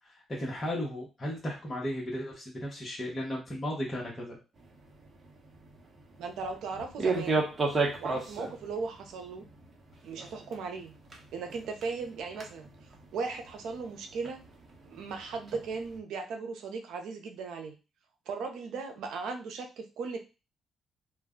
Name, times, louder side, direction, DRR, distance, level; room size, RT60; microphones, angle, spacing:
voice 1, 0.0-4.4, equal, 25° left, -4 dB, 0.9 m, -35 dB
sound 1, 4.6-16.0, right 3 dB, 35° right, 0.8 m, -36 dB
voice 2, 6.2-7.5 8.0-9.4 10.0-10.9 11.3-12.7 13.1-14.4 14.8-17.7 18.3-20.2, right 4 dB, 80° right, 4 dB, 0.6 m, -37 dB
2.5 x 2.1 x 3.6 m, 0.30 s
cardioid pair, 90°, 0 cm